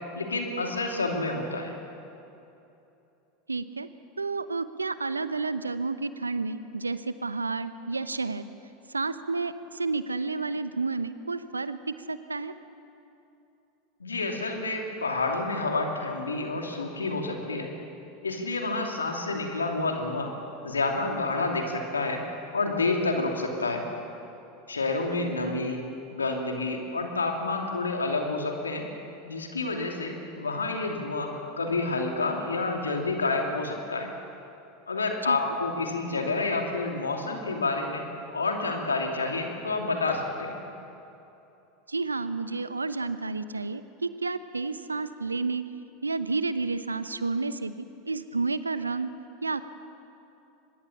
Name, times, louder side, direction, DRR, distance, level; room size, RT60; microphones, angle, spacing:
voice 1, 0.1-1.7 14.0-17.7 18.2-20.3 20.6-22.2 22.5-23.8 24.7-25.8 26.1-28.8 29.2-34.1 34.9-38.0 38.3-40.6, left 3 dB, 80° left, 2 dB, 2.8 m, -29 dB
voice 2, 3.5-3.9 4.2-8.5 8.9-12.5 25.5-25.6 35.2-35.4 41.9-45.6 46.0-49.1 49.4-49.6, right 3 dB, 85° right, 13 dB, 0.8 m, -31 dB
24.0 x 21.0 x 7.3 m, 2.8 s
figure-of-eight pair, 80°, 0 cm